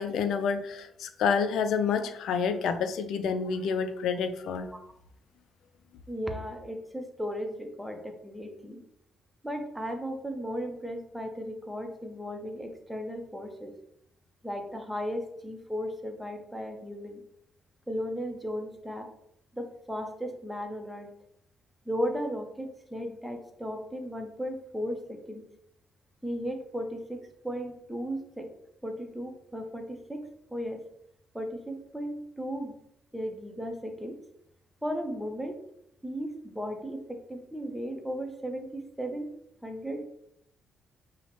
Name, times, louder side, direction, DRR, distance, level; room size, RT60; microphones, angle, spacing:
voice 1, 0.0-4.7, left 6 dB, 75° left, 10 dB, 0.4 m, -28 dB
voice 2, 6.1-8.8 9.4-13.7 14.4-17.2 17.9-19.1 19.5-21.1 21.9-25.4 26.2-28.5 28.8-30.8 31.3-32.8 33.1-34.2 34.8-35.6 36.0-39.3 39.6-40.1, equal, ahead, 4 dB, 0.7 m, -35 dB
5.5 x 2.1 x 3.0 m, 0.75 s
cardioid pair, 90°, 0 cm